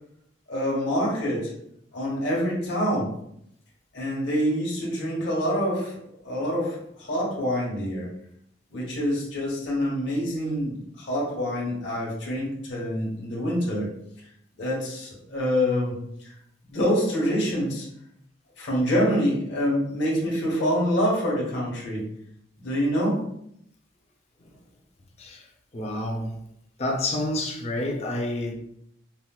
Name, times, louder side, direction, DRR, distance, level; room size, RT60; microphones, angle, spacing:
voice 1, 0.5-1.5 1.9-3.1 3.9-6.0 6.2-8.1 8.7-13.9 14.6-16.3 16.7-17.9 18.6-22.0 22.6-23.2, equal, 65° left, -5 dB, 0.9 m, -26 dB
voice 2, 25.7-26.3 26.8-28.5, left 1 dB, 35° left, 1 dB, 0.5 m, -29 dB
4.3 x 2.0 x 2.2 m, 0.74 s
head